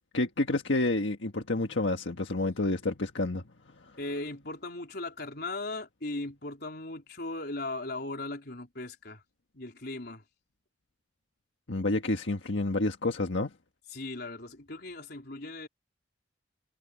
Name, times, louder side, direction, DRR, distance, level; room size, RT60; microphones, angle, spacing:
voice 1, 0.1-3.4 11.7-13.5, left 2 dB, 90° left, 1.5 m, -29 dB
voice 2, 4.0-9.2 9.5-10.2 13.9-15.7, left 2 dB, 60° left, 4.2 m, -38 dB
head